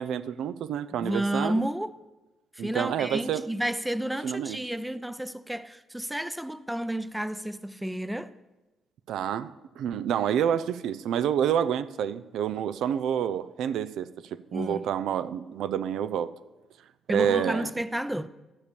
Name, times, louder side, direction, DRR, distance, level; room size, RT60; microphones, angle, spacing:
voice 1, 0.0-1.6 2.6-3.4 4.2-4.6 9.1-16.3 17.1-17.7, right 9 dB, 80° right, 0.5 m, -28 dB
voice 2, 0.9-2.0 2.6-8.3 14.5-14.8 17.1-18.3, right 1 dB, 5° right, 0.6 m, -31 dB
13.0 x 6.6 x 6.9 m
cardioid pair, 90°, 0 cm